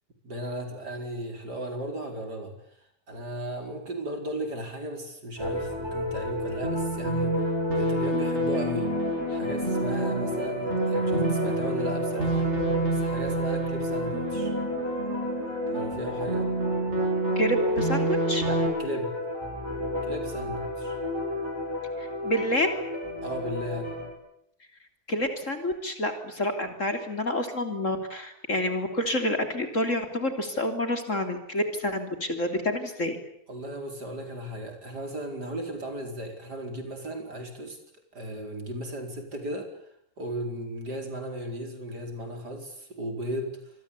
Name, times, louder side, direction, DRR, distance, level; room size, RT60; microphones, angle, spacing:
voice 1, 0.2-2.6 3.1-8.9 9.3-12.5 12.9-14.5 15.7-16.5 18.4-19.1 20.0-21.0 23.2-24.0 33.5-37.8 38.1-39.7 40.2-43.6, right 1 dB, 50° right, 5 dB, 5.3 m, -36 dB
Desert ambient music, 5.4-24.1, left 1 dB, 10° right, 6.7 m, -33 dB
sound 1, 6.6-18.7, right 2 dB, 30° right, 8.2 m, -28 dB
voice 2, 17.4-18.5 22.0-22.8 25.1-33.2, left 1 dB, 35° left, 6 dB, 3.6 m, -28 dB
27.0 x 22.5 x 8.5 m, 0.72 s
omnidirectional pair, 2.2 m